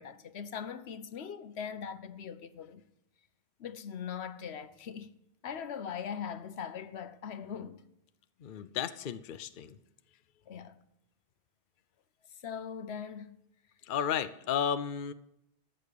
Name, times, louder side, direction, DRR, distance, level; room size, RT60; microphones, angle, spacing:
voice 1, 0.0-2.8 3.6-5.1 5.4-7.8 10.5-10.8 12.4-13.3, left 7 dB, 80° left, 1.1 m, -40 dB
voice 2, 8.4-9.8 13.8-15.1, left 8 dB, 55° left, 0.7 m, -33 dB
14.0 x 6.6 x 8.4 m
omnidirectional pair, 1.1 m